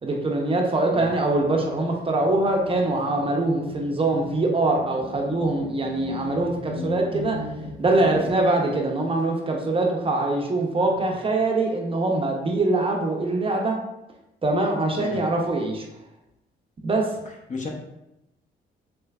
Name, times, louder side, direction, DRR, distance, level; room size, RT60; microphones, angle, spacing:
voice 1, 0.0-7.4 7.8-13.8 14.4-15.9 16.8-17.1, right 2 dB, 25° right, 1 dB, 0.6 m, -23 dB
voice 2, 0.9-1.1 15.0-15.2 17.5-17.7, left 4 dB, 40° left, 0 dB, 0.7 m, -33 dB
sound 1, 1.0-8.6 9.6-9.7 10.2-11.2, left 2 dB, 65° left, 1.0 m, -38 dB
3.2 x 3.1 x 2.3 m, 0.89 s
cardioid pair, 90°, 20 cm